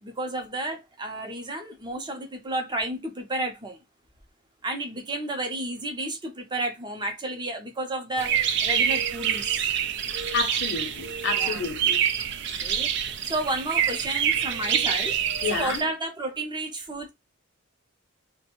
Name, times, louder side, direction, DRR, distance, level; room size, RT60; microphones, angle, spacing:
voice 1, 0.0-3.8 4.6-8.4 8.6-9.7 11.4-11.6 12.3-12.9 13.2-15.1 15.5-17.1, right 2 dB, 20° right, 0.6 m, -31 dB
sound 1, 8.2-15.8, right 9 dB, 55° right, 0.4 m, -26 dB
voice 2, 10.3-12.0 15.4-15.8, left 5 dB, 55° left, 0.6 m, -30 dB
2.5 x 2.2 x 2.9 m
head